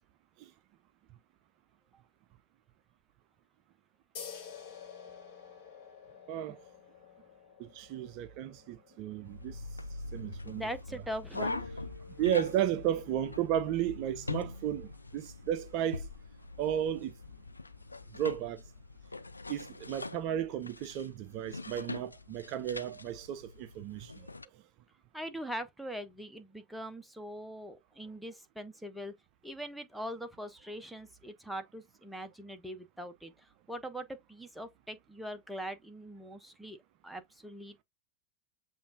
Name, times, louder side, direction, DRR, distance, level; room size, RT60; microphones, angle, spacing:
sound 1, 4.1-11.3, left 7 dB, 50° left, 1.4 m, -51 dB
voice 1, 6.3-6.6 7.6-9.6 10.1-10.7 12.2-16.1 16.6-17.1 18.1-18.6 19.5-24.3, right 11 dB, 40° right, 0.4 m, -34 dB
sound 2, 9.2-24.4, left 3 dB, 80° left, 0.3 m, -43 dB
voice 2, 10.5-11.7 25.1-29.1 29.4-36.8 37.0-37.8, equal, ahead, 0.7 m, -42 dB
6.9 x 2.5 x 2.5 m
figure-of-eight pair, 90°, 0 cm